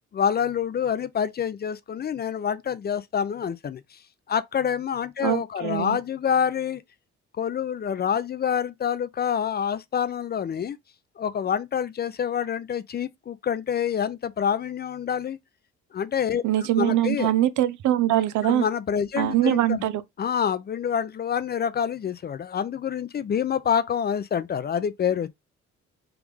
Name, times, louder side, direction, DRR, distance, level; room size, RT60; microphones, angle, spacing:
voice 1, 0.1-4.0 4.3-6.8 7.4-10.8 11.2-15.4 15.9-16.4 16.8-17.3 18.4-19.8 20.2-25.3, left 8 dB, 35° left, 0.4 m, -27 dB
voice 2, 5.2-6.0 16.4-18.6 19.2-20.0, right 13 dB, 75° right, 0.5 m, -23 dB
3.5 x 2.4 x 3.2 m
cardioid pair, 90°, 30 cm